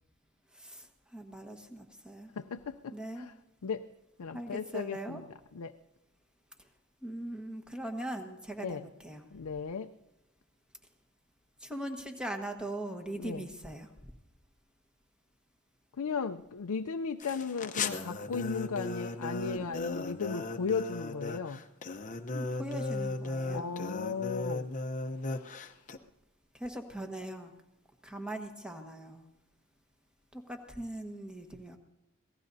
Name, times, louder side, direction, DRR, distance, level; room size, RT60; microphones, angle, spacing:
voice 1, 0.5-2.3 2.9-3.3 4.3-5.2 6.6-6.7 7.0-9.3 11.6-13.9 22.3-23.7 26.5-27.5 28.0-29.2 30.3-31.8, right 1 dB, 5° right, 4 dB, 1.4 m, -41 dB
voice 2, 2.4-3.3 3.6-3.9 4.2-5.3 5.5-5.7 8.6-8.8 9.3-9.9 13.2-13.4 16.0-21.6 23.5-24.7 25.3-25.8, left 5 dB, 90° left, 7 dB, 0.5 m, -36 dB
sound 1, 17.2-26.0, left 3 dB, 35° left, 0.8 m, -36 dB
26.0 x 18.0 x 2.7 m, 0.97 s
head